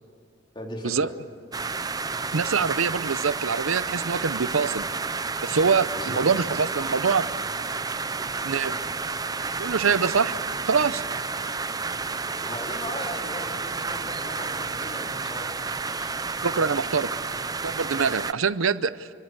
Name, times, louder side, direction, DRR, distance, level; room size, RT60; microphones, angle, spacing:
voice 1, 0.5-1.1 5.9-6.5 12.4-16.2, left 1 dB, 25° left, 1 dB, 3.5 m, -38 dB
sound 1, 1.5-18.3, right 4 dB, 20° right, 0.6 m, -31 dB
voice 2, 2.3-4.9 5.4-7.2 8.4-8.7 9.6-10.4 10.7-11.0 16.4-17.1 17.6-19.1, right 5 dB, 90° right, 15 dB, 0.7 m, -24 dB
28.0 x 24.5 x 8.0 m, 2.4 s
head